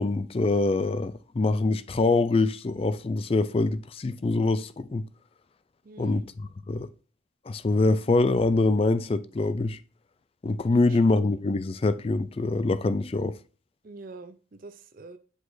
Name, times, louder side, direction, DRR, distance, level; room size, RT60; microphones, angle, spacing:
voice 1, 0.0-5.0 6.0-6.9 7.5-9.8 10.4-13.4, left 3 dB, 30° left, 0.3 m, -24 dB
voice 2, 5.8-6.3 10.7-11.0 13.8-15.2, right 3 dB, 45° right, 0.4 m, -45 dB
8.0 x 4.7 x 2.6 m
head